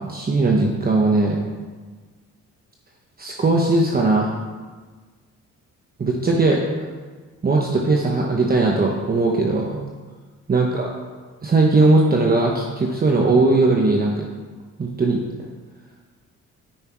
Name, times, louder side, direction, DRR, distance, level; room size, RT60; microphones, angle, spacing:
voice 1, 0.1-1.4 3.2-4.4 6.0-6.6 7.4-9.8 10.5-10.9 11.4-14.2 14.8-15.2, right 2 dB, 30° right, 0 dB, 1.0 m, -19 dB
9.9 x 5.6 x 4.6 m, 1.4 s
cardioid pair, 90°, 30 cm